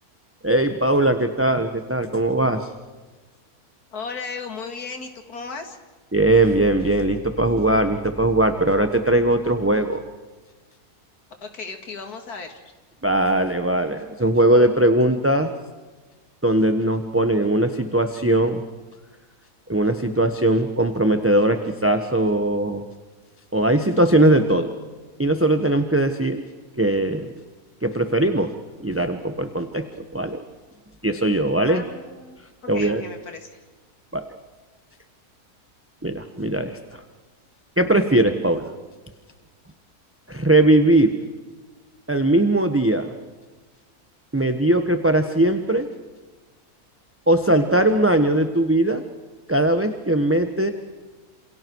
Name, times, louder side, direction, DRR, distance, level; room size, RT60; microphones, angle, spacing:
voice 1, 0.4-2.7 6.1-10.0 13.0-15.5 16.4-18.6 19.7-22.8 23.5-24.7 25.2-26.4 26.8-27.3 27.8-28.5 28.8-29.8 30.1-30.4 31.0-31.8 32.7-33.0 34.1-34.2 36.0-36.8 37.8-38.7 40.3-41.2 42.1-43.1 44.3-45.9 47.3-49.0 49.5-50.7, right 1 dB, 10° right, 7 dB, 1.2 m, -20 dB
voice 2, 3.9-5.8 11.4-12.6 31.6-32.4 32.7-33.6, left 4 dB, 75° left, 5 dB, 2.9 m, -35 dB
28.5 x 27.5 x 4.8 m, 1.3 s
omnidirectional pair, 1.6 m